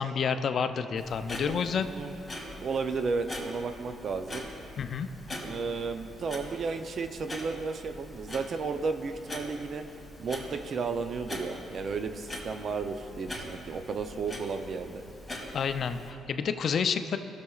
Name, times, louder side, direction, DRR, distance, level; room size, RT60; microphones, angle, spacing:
voice 1, 0.0-1.9 4.8-5.1 15.5-17.2, left 6 dB, 55° left, 10 dB, 0.4 m, -29 dB
Clock, 1.0-16.1, left 1 dB, 10° left, 2.2 m, -43 dB
voice 2, 2.6-4.5 5.4-9.8 10.2-15.0, right 4 dB, 50° right, 7 dB, 0.5 m, -33 dB
18.5 x 6.9 x 2.4 m, 2.7 s
cardioid pair, 95°, 0 cm